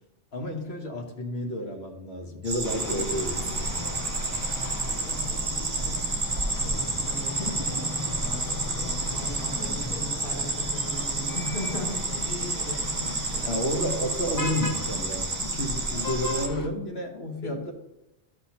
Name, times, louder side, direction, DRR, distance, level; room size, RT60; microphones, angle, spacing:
voice 1, 0.3-4.0 7.4-7.9 13.4-17.7, left 1 dB, 65° left, 2 dB, 1.3 m, -31 dB
sound 1, 2.4-16.5, right 3 dB, 45° right, 1.2 m, -30 dB
sound 2, 2.6-16.7, left 2 dB, 30° left, 0.4 m, -37 dB
voice 2, 5.0-5.9 6.6-7.3 7.7-13.8 15.9-16.1 17.4-17.7, left 1 dB, 45° left, -5 dB, 2.6 m, -39 dB
12.0 x 5.9 x 2.8 m, 0.94 s
omnidirectional pair, 1.2 m